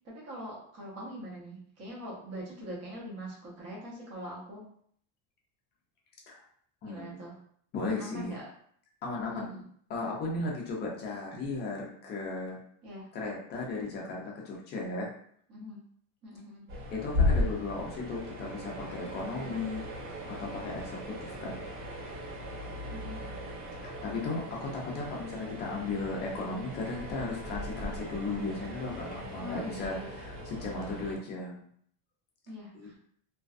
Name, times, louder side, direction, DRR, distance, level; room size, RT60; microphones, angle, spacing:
voice 1, 0.0-4.6 6.8-7.4 8.0-8.5 9.3-9.6 12.8-13.1 15.5-15.8 16.2-16.7 19.3-19.6 22.9-23.3 29.3-30.2 32.5-33.0, equal, 35° right, -4 dB, 0.8 m, -43 dB
voice 2, 6.8-7.2 7.7-8.4 9.0-9.5 9.9-12.6 13.1-15.1 16.9-19.8 20.3-21.6 23.8-31.6 32.7-33.0, left 3 dB, 25° left, -2 dB, 0.4 m, -36 dB
sound 1, 16.7-31.2, left 2 dB, 65° right, 1.4 m, -36 dB
2.6 x 2.2 x 2.3 m, 0.62 s
cardioid pair, 165°, 42 cm